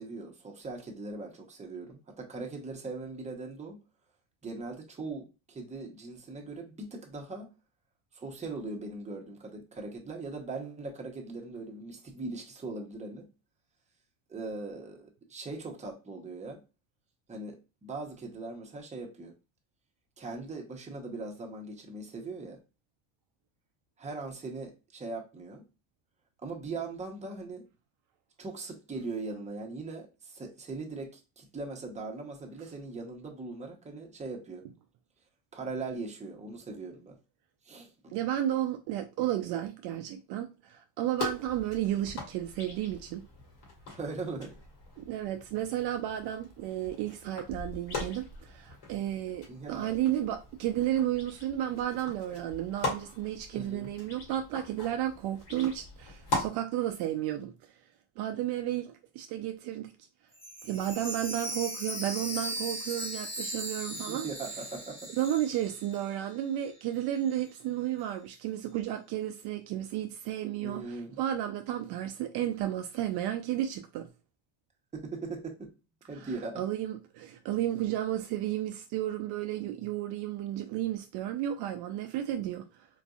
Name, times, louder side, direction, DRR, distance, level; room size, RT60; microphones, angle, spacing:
voice 1, 0.0-3.8 4.4-7.5 8.1-13.3 14.3-16.6 17.3-19.3 20.2-22.6 24.0-25.6 26.4-27.6 28.4-34.7 35.5-37.2 37.6-37.9 43.9-44.6 49.5-50.0 53.5-53.9 56.3-56.4 63.9-65.1 70.6-71.2 74.9-75.7 76.1-76.6, right 3 dB, 15° right, 0.8 m, -40 dB
voice 2, 38.1-43.3 45.0-57.5 58.2-59.9 60.6-64.3 65.1-74.1 76.2-76.3 76.6-82.9, right 12 dB, 60° right, 0.5 m, -33 dB
sound 1, 41.2-56.5, left 2 dB, 60° left, 1.9 m, -41 dB
Chime, 60.3-66.3 66.6-66.7 67.3-67.4, equal, 15° left, 1.1 m, -38 dB
3.9 x 2.5 x 2.3 m
supercardioid pair, 115°, 45 cm